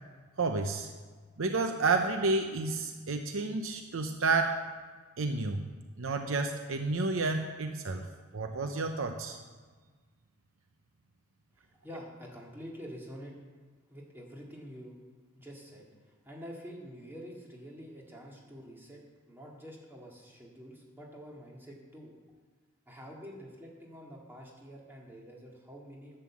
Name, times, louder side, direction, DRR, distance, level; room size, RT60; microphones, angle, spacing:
voice 1, 0.4-0.9 1.4-4.7 5.2-5.6 6.0-8.1 8.3-9.4, right 3 dB, 70° right, 6 dB, 0.7 m, -30 dB
voice 2, 11.5-13.4 13.9-15.0 15.3-22.1 22.9-26.2, equal, 10° right, -2 dB, 2.1 m, -47 dB
11.0 x 8.0 x 7.2 m, 1.4 s
head